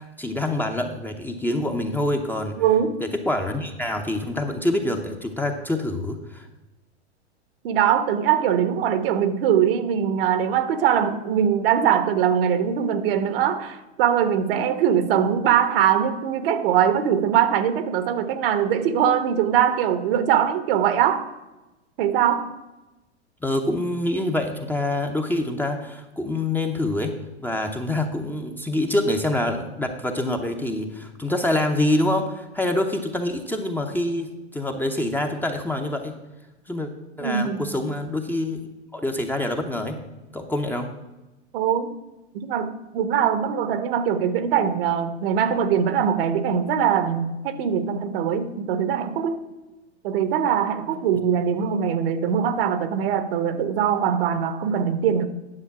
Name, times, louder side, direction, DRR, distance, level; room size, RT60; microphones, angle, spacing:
voice 1, 0.0-2.6 3.3-6.5 23.4-27.1 27.4-36.1 36.7-36.9 37.2-38.6 38.9-40.0 40.3-40.9, left 1 dB, 5° left, 0.8 m, -26 dB
voice 2, 2.6-3.0 7.6-21.3 22.0-22.5 37.2-37.7 41.5-41.9 42.3-49.4 50.0-55.3, right 8 dB, 55° right, 1.1 m, -22 dB
10.0 x 6.7 x 5.9 m
hypercardioid pair, 115°, 35 cm